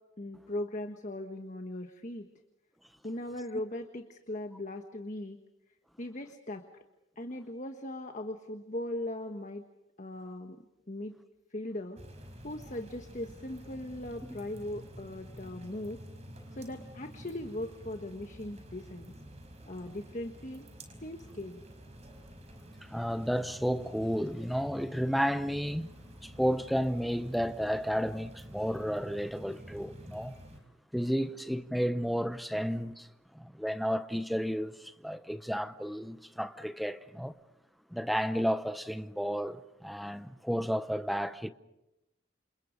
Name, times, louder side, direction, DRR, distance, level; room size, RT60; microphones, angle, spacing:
voice 1, 0.2-2.3 3.0-5.4 6.0-6.6 7.2-9.7 10.0-11.2 11.5-12.0 12.4-16.0 16.5-19.1 19.7-20.7 21.0-21.6, left 1 dB, 40° left, 1.3 m, -39 dB
sound 1, 12.0-30.6, equal, 35° right, 4.9 m, -50 dB
voice 2, 22.8-25.9 26.2-30.4 30.9-33.1 33.3-37.4 37.9-41.5, equal, ahead, 0.8 m, -32 dB
29.0 x 27.5 x 5.2 m
head